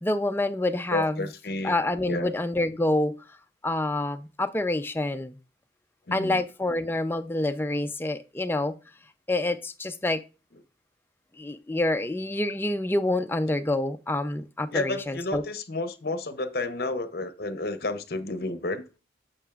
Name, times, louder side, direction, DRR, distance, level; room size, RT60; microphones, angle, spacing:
voice 1, 0.0-1.2 1.6-3.1 3.6-5.4 6.1-8.7 9.3-10.2 11.4-15.4, left 2 dB, 10° left, 0.4 m, -27 dB
voice 2, 0.9-1.7 2.0-2.3 6.1-6.4 14.7-19.0, left 2 dB, 55° left, 0.8 m, -31 dB
8.8 x 7.0 x 2.4 m
head